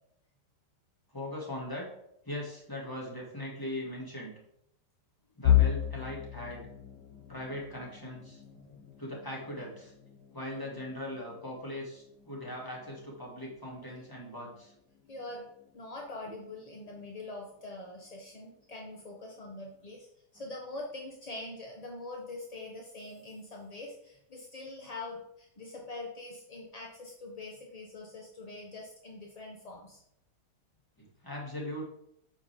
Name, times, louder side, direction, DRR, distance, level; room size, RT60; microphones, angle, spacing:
voice 1, 1.1-1.9 2.3-4.4 5.4-6.7 7.3-8.4 9.0-9.9 10.3-14.7 31.0-31.8, left 1 dB, 10° left, -3 dB, 1.9 m, -40 dB
sound 1, 5.4-17.3 17.7-18.0 18.3-18.5 19.4-19.8, left 11 dB, 80° left, 1.6 m, -35 dB
voice 2, 15.1-15.4 15.7-20.1 20.3-30.0, left 2 dB, 35° left, -1 dB, 0.6 m, -44 dB
8.8 x 5.7 x 3.4 m, 0.76 s
omnidirectional pair, 1.9 m